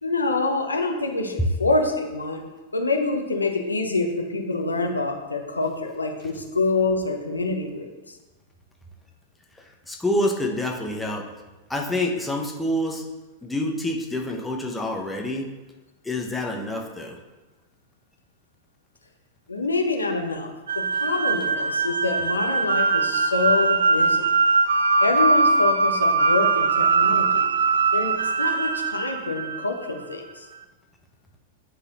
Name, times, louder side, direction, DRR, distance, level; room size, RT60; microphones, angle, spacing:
voice 1, 0.0-2.4 2.7-7.9 19.5-24.3 25.0-27.5 27.9-30.5, left 3 dB, 90° left, 4 dB, 0.7 m, -26 dB
voice 2, 9.6-11.3 11.7-13.0 13.4-15.5 16.0-17.2, left 1 dB, 5° left, 1 dB, 1.0 m, -27 dB
sound 1, 20.7-29.9, right 4 dB, 75° right, 0.4 m, -21 dB
9.7 x 4.1 x 3.0 m, 1.1 s
figure-of-eight pair, 95°, 0 cm